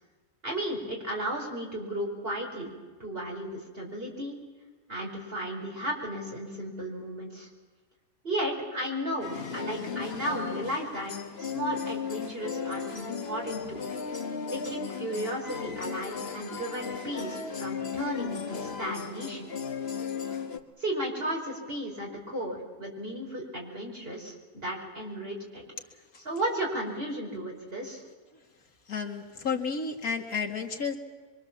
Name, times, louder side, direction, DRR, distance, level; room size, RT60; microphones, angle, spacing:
voice 1, 0.4-2.7 3.0-4.4 4.9-7.5 8.2-11.1 11.4-13.8 14.5-19.5 20.8-25.6 26.2-28.0, right 1 dB, 40° right, -1 dB, 5.5 m, -34 dB
sound 1, 9.2-20.6, left 6 dB, 45° left, 1.6 m, -36 dB
voice 2, 28.9-31.0, left 5 dB, 85° left, 3 dB, 2.5 m, -31 dB
25.5 x 24.0 x 7.4 m, 1.4 s
omnidirectional pair, 1.5 m